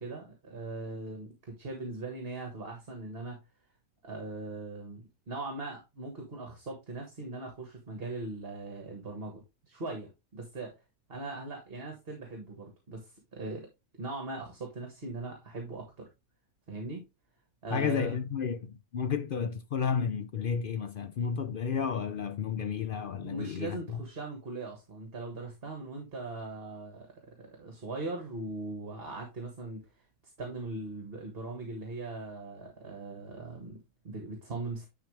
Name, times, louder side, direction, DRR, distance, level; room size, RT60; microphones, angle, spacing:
voice 1, 0.0-3.4 4.0-10.7 11.1-13.7 14.0-16.1 16.7-17.0 17.6-18.2 23.1-29.8 30.4-34.9, right 2 dB, 40° right, 1.7 m, -40 dB
voice 2, 17.7-23.8, left 7 dB, 70° left, 0.5 m, -32 dB
10.5 x 4.0 x 3.3 m
omnidirectional pair, 1.6 m